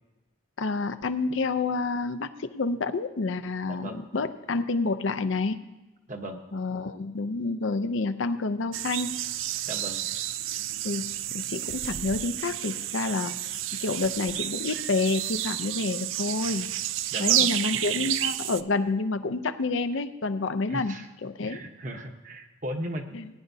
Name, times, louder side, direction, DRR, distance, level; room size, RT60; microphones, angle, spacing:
voice 1, 0.6-5.6 6.5-9.1 10.8-11.1 11.3-13.3 13.8-16.7 17.2-20.9 21.2-21.6 23.1-23.3, left 3 dB, 75° left, 10 dB, 0.6 m, -28 dB
voice 2, 3.7-4.0 6.1-6.4 9.6-10.0 17.1-17.5 20.7-21.1 21.4-23.0, right 1 dB, 40° right, 4 dB, 1.1 m, -36 dB
sound 1, 8.7-18.6, right 12 dB, 80° right, 0.4 m, -30 dB
19.5 x 9.9 x 2.7 m, 1.1 s
head